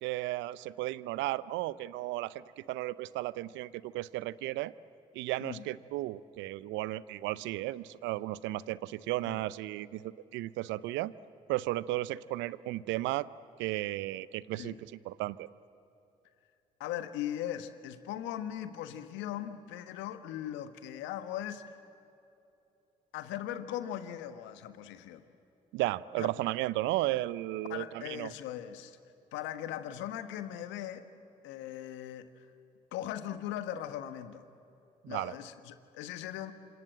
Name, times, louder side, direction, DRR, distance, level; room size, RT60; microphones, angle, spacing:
voice 1, 0.0-4.7 5.1-11.1 11.5-13.3 13.6-14.7 15.0-15.5 25.7-28.3 35.0-35.3, right 17 dB, 70° right, 19 dB, 0.7 m, -34 dB
voice 2, 16.8-21.6 23.1-25.2 26.2-26.3 27.7-29.0 29.3-31.0 31.4-32.4 32.9-34.4 35.1-36.5, left 11 dB, 70° left, 9 dB, 1.5 m, -39 dB
28.0 x 26.5 x 7.7 m, 2.8 s
hypercardioid pair, 50°, 20 cm